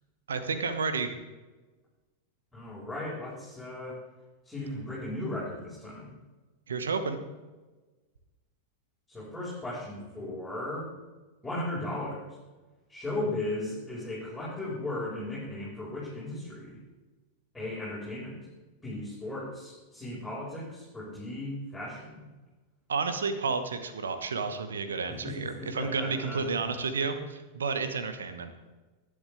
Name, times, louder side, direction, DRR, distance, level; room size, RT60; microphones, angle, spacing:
voice 1, 0.3-1.1 6.7-7.2 22.9-28.5, right 4 dB, 70° right, 9 dB, 1.5 m, -31 dB
voice 2, 2.5-4.0 4.4-6.2 9.1-10.9 11.4-12.4 12.9-16.8 17.5-18.4 18.8-22.3 25.1-26.5, left 1 dB, 5° left, -8 dB, 5.3 m, -36 dB
19.0 x 10.5 x 3.5 m, 1.2 s
figure-of-eight pair, 90°, 0 cm